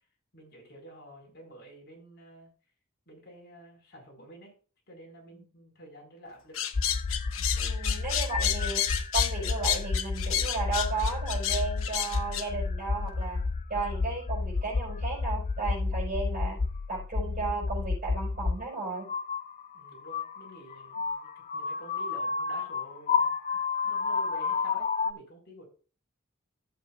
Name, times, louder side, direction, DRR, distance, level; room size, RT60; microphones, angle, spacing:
voice 1, 0.3-2.5 3.1-4.5 4.9-6.6 19.7-23.4 23.8-25.7, right 1 dB, 55° left, 0 dB, 5.0 m, -50 dB
sound 1, 6.5-12.4, left 10 dB, 85° left, 1.0 m, -30 dB
sound 2, 6.7-18.6 19.0-25.1, left 4 dB, 35° left, 0.5 m, -31 dB
voice 2, 7.4-16.6 16.9-19.1, right 3 dB, 40° right, -3 dB, 5.3 m, -34 dB
13.5 x 7.7 x 2.4 m, 0.37 s
head